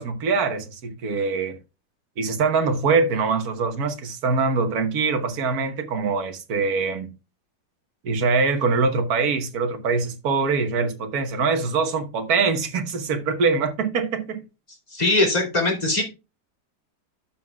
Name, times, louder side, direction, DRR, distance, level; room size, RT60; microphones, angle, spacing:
voice 1, 0.0-1.6 2.2-7.1 8.0-14.4, right 4 dB, 55° right, 1.6 m, -23 dB
voice 2, 14.9-16.0, left 2 dB, 20° left, 2.7 m, -21 dB
12.5 x 5.8 x 2.3 m
omnidirectional pair, 2.0 m